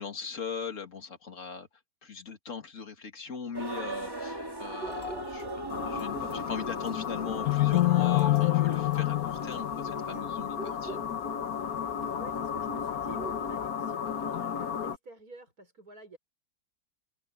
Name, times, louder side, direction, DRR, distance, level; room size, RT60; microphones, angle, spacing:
voice 1, 0.0-1.7 2.0-11.0, left 6 dB, 55° left, 2.7 m, -40 dB
sound 1, 3.5-10.2, right 1 dB, 15° right, 2.4 m, -40 dB
sound 2, 4.8-13.7, right 2 dB, 45° right, 3.0 m, -47 dB
sound 3, 5.7-15.0, left 11 dB, 80° left, 1.6 m, -29 dB
voice 2, 12.2-16.2, right 4 dB, 80° right, 6.0 m, -50 dB
omnidirectional pair, 1.6 m